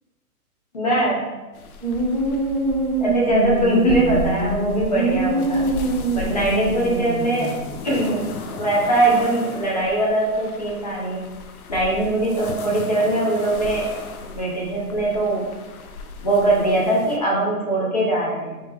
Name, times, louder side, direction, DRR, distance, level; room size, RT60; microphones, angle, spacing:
voice 1, 0.7-1.3 3.0-5.7 6.1-7.5 7.8-11.3 11.7-13.9 14.2-15.4 16.2-18.6, right 1 dB, 25° left, -5 dB, 0.6 m, -21 dB
sound 1, 1.5-17.2, left 4 dB, 70° left, 0.5 m, -36 dB
sound 2, 1.8-7.7, right 2 dB, 30° right, 0.4 m, -24 dB
3.0 x 2.9 x 3.5 m, 1.2 s
hypercardioid pair, 170°, 45 cm